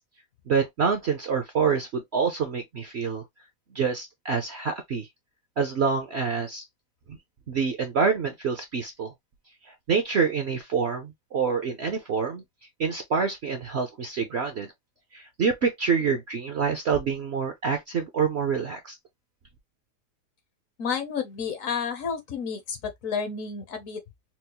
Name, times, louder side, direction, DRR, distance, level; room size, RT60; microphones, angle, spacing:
voice 1, 0.5-3.2 3.7-5.1 5.6-6.6 7.5-9.1 9.9-12.4 12.8-14.7 15.1-18.9, right 5 dB, 60° right, 0.7 m, -26 dB
voice 2, 20.8-24.0, left 6 dB, 60° left, 1.0 m, -31 dB
4.5 x 2.0 x 2.8 m
omnidirectional pair, 1.8 m